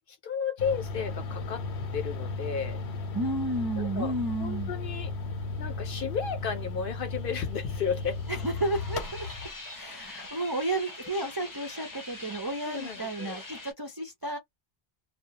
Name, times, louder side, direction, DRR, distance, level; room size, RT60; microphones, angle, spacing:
voice 1, 0.1-1.6 1.9-2.8 3.8-4.1 4.4-5.1 5.6-8.2 12.0-12.2 12.6-13.4, left 7 dB, 60° left, 0.7 m, -33 dB
sound 1, 0.6-9.5, left 3 dB, 85° left, 0.9 m, -35 dB
voice 2, 3.1-4.7 8.3-9.3 9.7-14.4, right 2 dB, 35° right, 0.4 m, -32 dB
sound 2, 6.6-13.7, left 2 dB, 25° left, 0.5 m, -44 dB
2.3 x 2.1 x 2.8 m
omnidirectional pair, 1.1 m